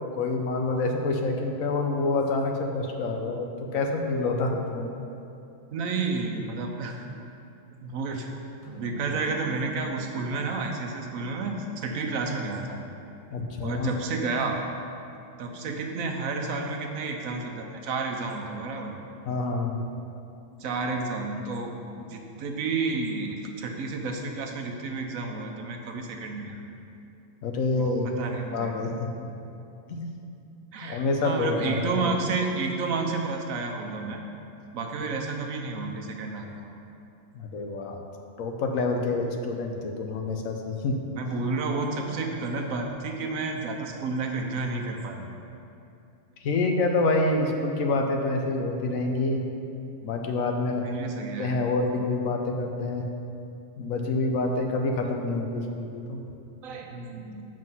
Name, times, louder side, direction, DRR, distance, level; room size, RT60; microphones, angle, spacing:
voice 1, 0.1-4.9 13.3-13.9 19.3-19.8 27.4-28.2 28.5-29.3 29.9-30.1 30.8-32.3 37.3-38.0 38.4-41.0 46.4-49.4 50.0-50.9 51.4-53.0 53.8-56.2, left 2 dB, 90° left, 3 dB, 1.2 m, -27 dB
voice 2, 5.7-6.9 7.8-8.3 8.8-12.8 13.6-14.6 15.4-18.9 20.6-26.6 27.8-28.7 30.7-34.2 34.7-36.5 41.1-45.3 50.8-51.6 56.6-57.5, right 3 dB, 90° right, 3 dB, 1.2 m, -31 dB
sound 1, 8.6-13.2, right 4 dB, 35° right, 1.2 m, -45 dB
7.6 x 5.1 x 5.5 m, 2.7 s
omnidirectional pair, 1.4 m